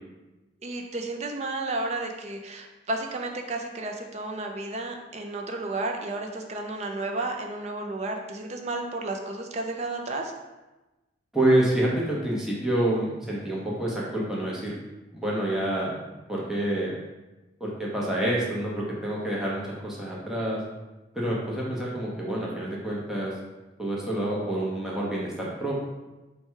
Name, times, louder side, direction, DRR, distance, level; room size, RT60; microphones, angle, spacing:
voice 1, 0.6-10.3, right 2 dB, 35° right, 3 dB, 0.4 m, -32 dB
voice 2, 11.3-14.7 15.1-16.0 16.3-16.9 17.6-20.6 21.1-23.3 23.8-25.8, right 1 dB, 5° right, -5 dB, 0.7 m, -27 dB
4.4 x 2.3 x 4.5 m, 1.1 s
head